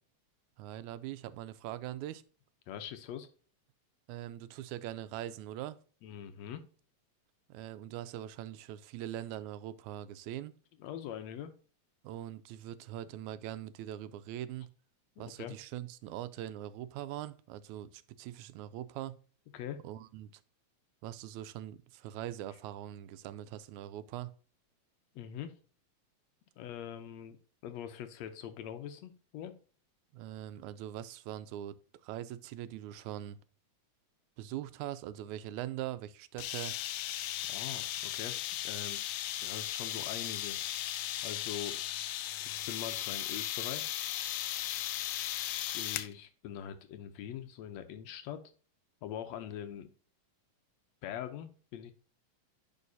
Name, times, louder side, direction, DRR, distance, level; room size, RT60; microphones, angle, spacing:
voice 1, 0.6-2.2 4.1-5.8 7.5-10.6 12.0-14.7 15.2-19.2 19.8-20.4 21.0-24.3 30.1-33.4 34.4-36.8, right 12 dB, 90° right, 2.0 m, -42 dB
voice 2, 2.7-3.3 6.0-6.6 10.8-11.5 15.2-15.6 19.5-19.8 25.2-25.6 26.6-27.4 27.6-29.6 37.5-38.4 38.6-40.6 41.2-41.8 42.5-44.0 45.7-48.4 49.0-49.9 51.0-51.9, left 10 dB, 75° left, 1.9 m, -43 dB
sound 1, 36.4-46.1, left 13 dB, 90° left, 2.0 m, -36 dB
10.0 x 4.5 x 2.7 m
omnidirectional pair, 3.3 m